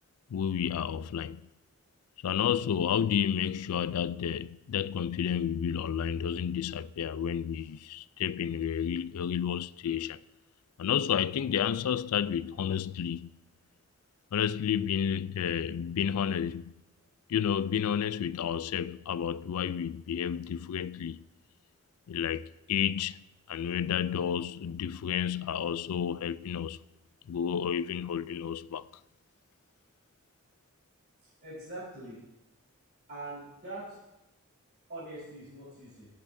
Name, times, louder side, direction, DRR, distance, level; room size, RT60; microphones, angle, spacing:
voice 1, 0.3-1.5 2.2-10.2 10.8-13.3 14.3-16.7 17.3-21.2 22.1-26.8 27.3-28.9, left 8 dB, 90° left, 0.4 m, -31 dB
voice 2, 31.4-32.2 33.1-34.0 34.9-36.1, right 2 dB, 45° right, 4.3 m, -42 dB
23.5 x 8.5 x 2.7 m
head